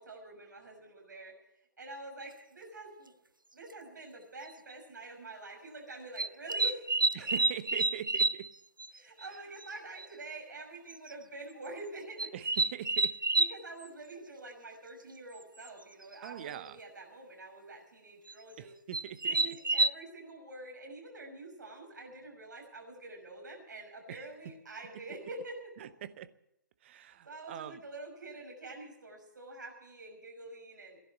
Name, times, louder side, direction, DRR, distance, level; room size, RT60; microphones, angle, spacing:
voice 1, 0.0-1.3 1.8-3.1 3.5-6.8 7.2-7.3 8.9-12.3 13.4-18.7 19.3-25.6 26.9-31.0, right 2 dB, 65° right, 6.0 m, -46 dB
sound 1, 2.2-2.3 3.7-3.8 4.5-4.7 6.2-8.5 8.8-8.9 9.2-9.3 9.6-9.7 10.0-10.1 10.9-11.1 12.2-13.6 15.6-15.7 16.0-16.4 18.3-18.4 18.9-19.9, right 3 dB, 90° right, 0.5 m, -29 dB
voice 2, 7.1-8.5 12.3-13.2 16.2-16.8 18.6-19.6 24.1-24.2 25.8-26.3 26.8-27.8, right 11 dB, 35° right, 0.8 m, -43 dB
16.5 x 11.0 x 7.3 m
figure-of-eight pair, 130°, 11 cm